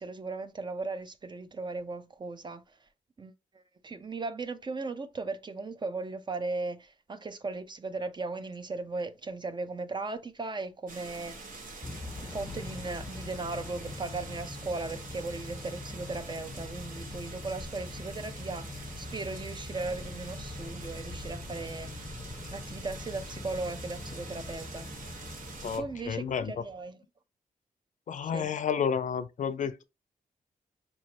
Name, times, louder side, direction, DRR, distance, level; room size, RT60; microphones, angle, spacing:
voice 1, 0.0-2.6 3.2-3.3 3.8-11.6 12.2-22.1 22.5-24.9 25.7-27.0 28.2-28.5, right 3 dB, 30° right, 0.5 m, -37 dB
sound 1, 10.9-25.8, right 3 dB, 70° right, 1.3 m, -45 dB
Motor vehicle (road) / Engine starting / Accelerating revving vroom, 11.8-26.8, left 3 dB, 20° left, 0.5 m, -43 dB
voice 2, 25.6-26.5 28.1-29.8, left 7 dB, 60° left, 0.5 m, -31 dB
4.9 x 3.1 x 2.8 m
wide cardioid pair, 110°, 14 cm